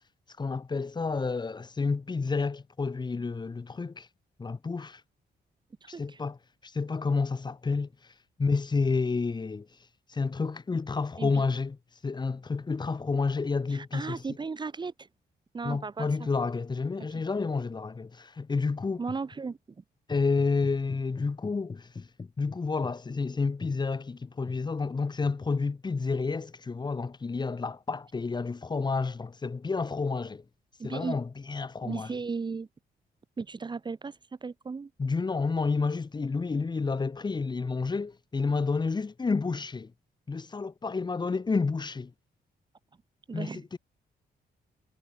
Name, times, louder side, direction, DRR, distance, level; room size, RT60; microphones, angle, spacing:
voice 1, 0.4-4.1 4.4-5.0 5.9-6.4 6.6-7.9 8.4-9.7 10.1-11.8 12.0-14.2 15.6-19.0 20.1-30.4 30.8-32.1 35.0-39.9 40.3-42.1 43.3-43.8, left 4 dB, 25° left, 3.4 m, -30 dB
voice 2, 5.8-6.2 11.2-11.4 13.7-15.1 15.5-16.1 17.1-17.2 19.0-19.6 30.8-31.2 31.8-32.7 33.4-34.9 43.3-43.6, right 4 dB, 25° right, 1.6 m, -35 dB
cardioid pair, 145°, 17 cm